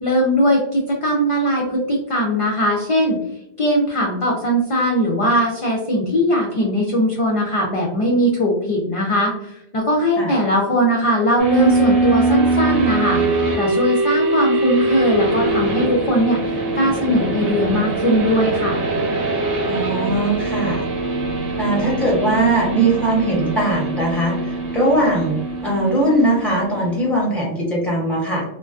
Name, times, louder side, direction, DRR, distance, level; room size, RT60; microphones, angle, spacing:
voice 1, 0.0-3.2 3.6-13.2 13.6-18.8, equal, 55° left, -2 dB, 0.4 m, -19 dB
sound 1, 11.4-27.1, right 3 dB, 55° right, 0.8 m, -22 dB
voice 2, 19.7-20.8 21.6-28.4, right 1 dB, ahead, -3 dB, 0.6 m, -20 dB
2.4 x 2.2 x 2.3 m, 0.81 s
omnidirectional pair, 1.1 m